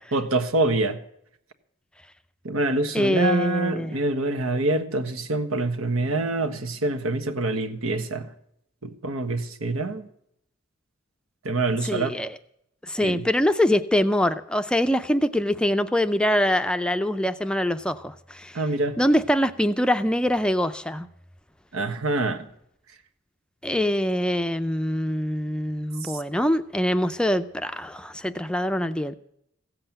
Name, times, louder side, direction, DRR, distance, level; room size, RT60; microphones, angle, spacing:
voice 1, 0.1-1.0 2.4-8.3 8.8-10.1 11.4-12.2 13.0-13.2 18.5-19.0 21.7-22.5 26.0-26.1, right 2 dB, 85° right, 8 dB, 1.5 m, -25 dB
voice 2, 2.9-4.0 11.8-12.4 12.8-18.6 19.0-21.1 23.6-29.2, left 1 dB, 5° left, 9 dB, 0.5 m, -24 dB
16.0 x 7.8 x 9.0 m, 0.73 s
head